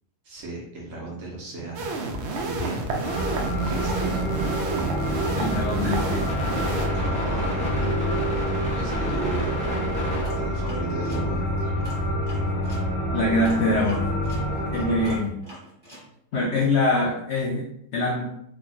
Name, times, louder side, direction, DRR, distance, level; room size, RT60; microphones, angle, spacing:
voice 1, 0.2-2.0 2.4-3.9 6.9-8.2 8.7-9.6 10.3-11.9, right 2 dB, 60° right, -2 dB, 1.0 m, -36 dB
sound 1, 1.7-6.9, right 3 dB, 80° right, 0.6 m, -30 dB
sound 2, 3.0-15.2, equal, 5° left, 0.5 m, -27 dB
voice 2, 5.4-6.3 13.1-14.1 14.7-15.4 16.3-18.2, left 2 dB, 75° left, -3 dB, 0.6 m, -24 dB
sound 3, 10.2-12.9 13.4-16.1, equal, 15° right, 1.1 m, -45 dB
3.2 x 2.2 x 2.6 m, 0.73 s
omnidirectional pair, 1.7 m